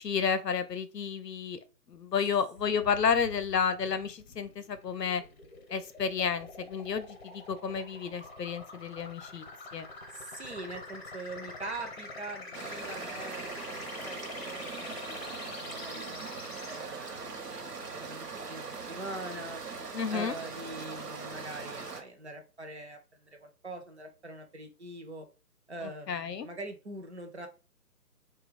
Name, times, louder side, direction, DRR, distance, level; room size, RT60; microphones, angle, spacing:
voice 1, 0.0-1.6 1.9-5.2 5.7-9.4 9.7-9.9 19.9-20.3 25.8-26.5, left 6 dB, 85° left, 0.6 m, -31 dB
sound 1, 2.6-16.8, left 3 dB, 40° left, 0.7 m, -46 dB
voice 2, 10.1-13.5 14.0-19.6 20.1-25.3 25.7-27.5, right 2 dB, 45° right, 0.5 m, -43 dB
sound 2, 12.5-22.0, right 4 dB, 75° right, 0.8 m, -41 dB
2.7 x 2.3 x 3.3 m
figure-of-eight pair, 145°, 48 cm